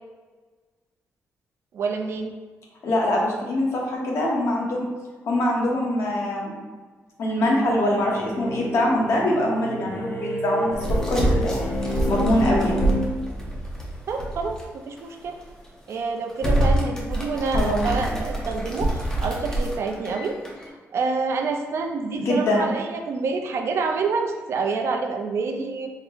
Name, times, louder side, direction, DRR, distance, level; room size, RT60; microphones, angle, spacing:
voice 1, 1.7-2.3 14.1-15.4 15.9-20.4 20.9-25.9, right 4 dB, 60° right, 3 dB, 0.4 m, -27 dB
voice 2, 2.8-4.9 5.3-6.5 7.2-12.8 17.5-18.0 22.2-22.7, left 1 dB, 65° left, -2 dB, 1.0 m, -24 dB
sound 1, 7.7-13.0, equal, 35° left, 1.4 m, -29 dB
sound 2, 10.7-14.6 15.0-15.1 15.6-15.9 16.3-20.7, right 1 dB, 10° left, 0.7 m, -26 dB
4.5 x 2.0 x 3.8 m, 1.4 s
wide cardioid pair, 155°, 5 cm